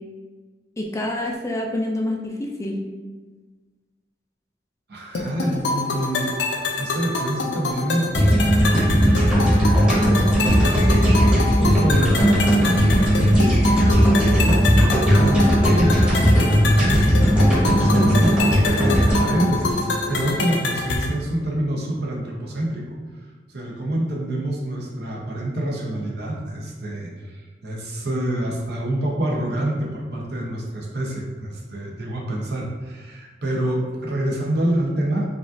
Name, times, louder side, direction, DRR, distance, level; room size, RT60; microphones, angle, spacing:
voice 1, 0.8-2.8, left 1 dB, 15° left, 0 dB, 0.3 m, -27 dB
voice 2, 4.9-6.3 6.8-8.1 8.9-9.7 10.3-13.6 14.2-22.8 23.5-35.3, right 1 dB, 65° right, -2 dB, 0.8 m, -27 dB
sound 1, 5.1-21.1, left 3 dB, 75° left, 0.5 m, -26 dB
sound 2, 8.1-20.4, equal, 5° right, 0.9 m, -17 dB
5.0 x 2.5 x 2.5 m, 1.4 s
head